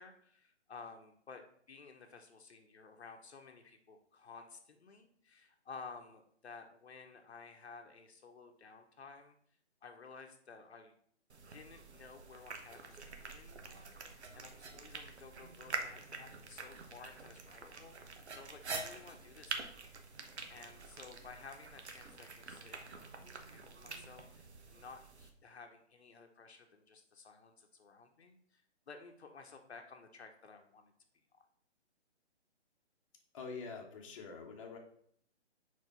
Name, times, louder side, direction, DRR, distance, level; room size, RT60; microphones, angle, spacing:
voice 1, 0.0-9.4 9.8-10.9 11.5-19.7 20.5-30.9 31.3-31.4, left 4 dB, 65° left, 4 dB, 1.0 m, -54 dB
sound 1, 11.3-25.3, right 4 dB, 70° right, 1.1 m, -47 dB
voice 2, 33.3-34.8, left 4 dB, 30° left, 0 dB, 1.0 m, -45 dB
4.8 x 4.4 x 5.6 m, 0.63 s
figure-of-eight pair, 150°, 35 cm